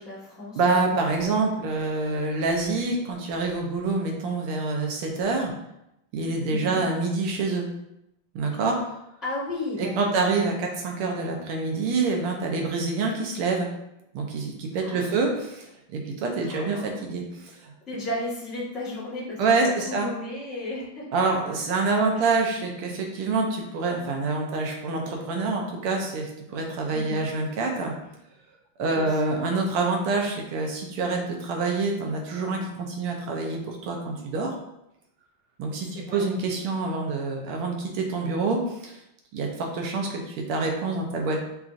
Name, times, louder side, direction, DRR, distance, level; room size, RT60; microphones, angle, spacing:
voice 1, 0.0-1.0 6.5-6.8 8.5-8.8 9.2-10.2 14.8-15.2 16.4-16.9 17.9-21.0 21.9-22.3 26.8-27.3 28.9-29.2 35.9-36.3, left 1 dB, ahead, -8 dB, 0.9 m, -35 dB
voice 2, 0.6-5.5 6.1-7.7 8.3-8.8 9.8-13.7 14.1-17.7 19.4-20.1 21.1-27.9 28.8-34.5 35.6-39.0 39.3-41.4, right 3 dB, 80° right, 1 dB, 1.6 m, -26 dB
5.8 x 2.6 x 2.5 m, 0.84 s
omnidirectional pair, 2.4 m